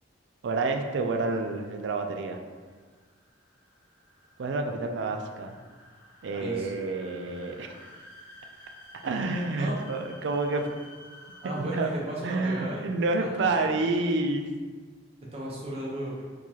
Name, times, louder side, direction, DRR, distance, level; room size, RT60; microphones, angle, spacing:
voice 1, 0.4-2.4 4.4-5.6 6.2-7.9 9.0-10.8 11.4-11.9 12.2-14.5, right 3 dB, 65° right, 4 dB, 0.3 m, -29 dB
sound 1, 2.5-12.4, left 1 dB, 65° left, 0.8 m, -52 dB
voice 2, 6.3-6.7 9.6-9.8 11.4-12.9 13.2-13.9 15.3-16.2, right 1 dB, 30° right, -5 dB, 0.8 m, -35 dB
4.5 x 2.3 x 2.8 m, 1.5 s
head